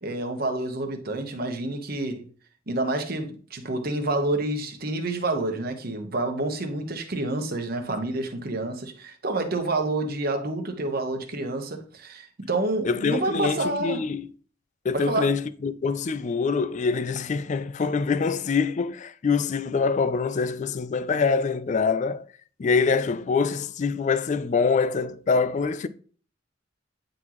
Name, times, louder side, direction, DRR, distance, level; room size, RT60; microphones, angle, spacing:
voice 1, 0.0-2.3 2.7-14.0 14.9-15.3, right 2 dB, 50° right, 1.1 m, -28 dB
voice 2, 12.8-14.3 14.8-22.2 22.6-25.9, left 5 dB, 40° left, 0.3 m, -25 dB
9.0 x 3.9 x 3.0 m
head